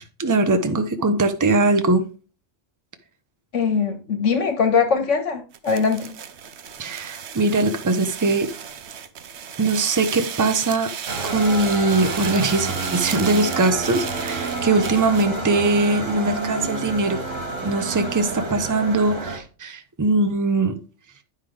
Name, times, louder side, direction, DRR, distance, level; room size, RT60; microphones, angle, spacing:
voice 1, 0.0-2.0 6.8-8.5 9.6-10.9 11.2-17.2 17.6-20.8, right 3 dB, 20° right, 0.6 m, -21 dB
voice 2, 3.5-6.1, left 5 dB, 75° left, 1.8 m, -21 dB
sound 1, 5.5-15.4, right 8 dB, 65° right, 1.0 m, -35 dB
sound 2, 11.1-19.4, right 3 dB, 80° right, 2.4 m, -29 dB
9.6 x 5.7 x 3.3 m
omnidirectional pair, 1.3 m